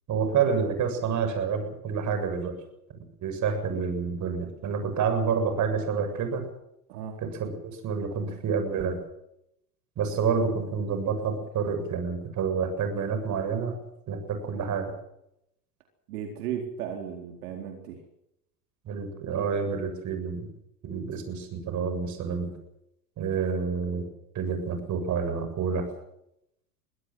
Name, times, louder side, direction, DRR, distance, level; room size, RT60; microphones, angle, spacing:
voice 1, 0.1-2.5 3.2-6.4 7.2-7.5 7.8-9.0 10.0-13.7 14.1-14.9 18.9-20.5 20.8-22.5 23.2-24.0 24.3-25.8, right 6 dB, 40° right, 7 dB, 7.4 m, -28 dB
voice 2, 16.1-18.0, right 8 dB, 70° right, 3 dB, 4.2 m, -35 dB
23.5 x 17.0 x 7.9 m, 0.80 s
hypercardioid pair, 100°, 47 cm